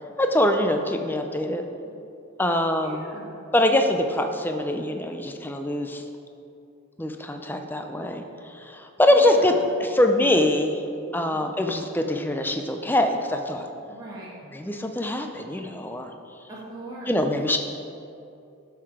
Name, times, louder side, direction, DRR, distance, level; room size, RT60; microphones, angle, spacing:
voice 1, 0.2-1.6 2.4-3.1 3.5-6.0 7.0-9.5 9.8-10.8 11.1-13.7 14.5-16.1 17.1-17.6, left 1 dB, 10° left, 5 dB, 0.5 m, -23 dB
voice 2, 2.8-3.5 9.1-9.5 11.3-11.5 13.9-14.4 16.5-17.3, right 1 dB, 20° right, -8 dB, 1.8 m, -41 dB
12.5 x 5.8 x 4.9 m, 2.6 s
head